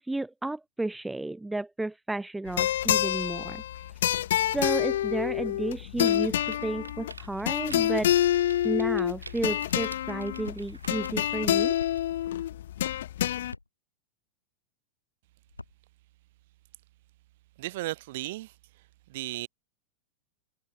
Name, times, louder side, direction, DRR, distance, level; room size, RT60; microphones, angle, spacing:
voice 1, 0.0-3.6 4.5-8.1 8.6-11.7, right 2 dB, 5° right, 0.7 m, -32 dB
sound 1, 2.5-13.5, left 12 dB, 60° left, 1.0 m, -27 dB
sound 2, 6.0-12.0, right 4 dB, 80° right, 1.6 m, -48 dB
sound 3, 10.4-10.7 11.8-12.0 13.5-13.7 15.5-15.8, left 3 dB, 80° left, 6.8 m, -44 dB
voice 2, 17.6-18.5 19.1-19.5, right 18 dB, 50° right, 4.1 m, -34 dB
figure-of-eight pair, 90°, 0 cm